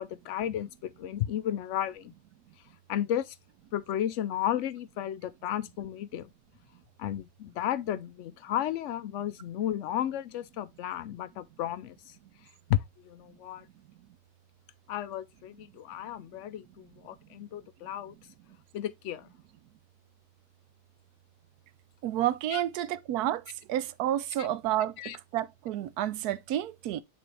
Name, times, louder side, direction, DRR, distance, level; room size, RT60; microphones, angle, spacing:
voice 1, 0.0-2.1 2.9-3.4 3.7-6.3 7.0-12.2 12.4-13.7 14.9-18.1 18.7-19.3 22.5-22.6 24.4-24.5 25.0-25.2, left 11 dB, 80° left, 0.6 m, -33 dB
voice 2, 22.0-23.4 23.7-27.0, right 12 dB, 75° right, 1.1 m, -30 dB
9.0 x 4.0 x 3.2 m
omnidirectional pair, 1.8 m